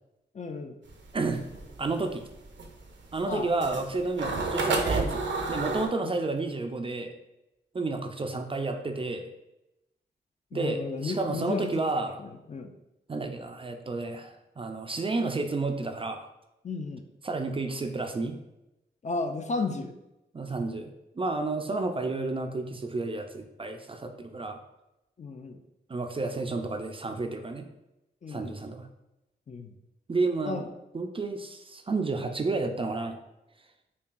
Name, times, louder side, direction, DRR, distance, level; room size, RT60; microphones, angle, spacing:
voice 1, 0.3-0.8 3.3-3.5 10.5-11.8 12.2-12.7 16.6-17.0 19.0-19.9 25.2-25.6 28.2-28.5 29.5-29.7 30.5-30.7, left 3 dB, 40° left, 6 dB, 0.4 m, -33 dB
sound 1, 0.9-5.9, right 3 dB, 70° right, 0.6 m, -30 dB
voice 2, 1.8-2.2 3.1-7.1 7.7-9.2 10.5-12.2 13.1-16.3 17.2-18.4 20.3-24.6 25.9-27.7 28.3-28.9 30.1-30.6 30.9-33.2, right 3 dB, 30° right, 5 dB, 0.4 m, -31 dB
5.5 x 2.2 x 2.5 m, 0.92 s
cardioid pair, 60°, 20 cm